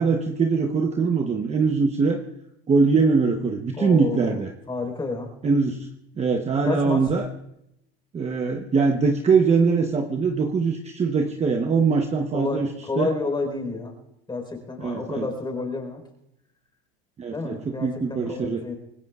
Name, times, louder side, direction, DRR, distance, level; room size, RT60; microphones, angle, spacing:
voice 1, 0.0-2.2 2.7-4.5 5.4-5.9 6.2-7.3 8.1-12.7 13.0-13.1 14.8-15.3 17.2-18.6, right 4 dB, 20° right, 4 dB, 1.0 m, -22 dB
voice 2, 3.8-4.4 4.7-5.3 6.6-7.0 12.3-13.9 14.3-16.0 17.3-18.8, left 3 dB, 15° left, 3 dB, 4.4 m, -30 dB
25.5 x 19.5 x 2.4 m, 0.81 s
supercardioid pair, 125°, 31 cm